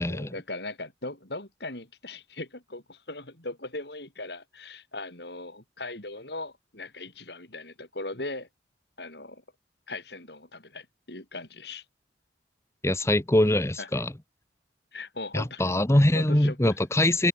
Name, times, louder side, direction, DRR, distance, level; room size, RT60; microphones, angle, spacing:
voice 1, 0.0-8.5 9.0-9.4 9.9-11.8 13.8-14.0 14.9-15.6 15.9-16.8, left 2 dB, 60° left, 4.9 m, -39 dB
voice 2, 12.8-14.1 15.3-17.3, left 1 dB, 15° left, 0.9 m, -23 dB
head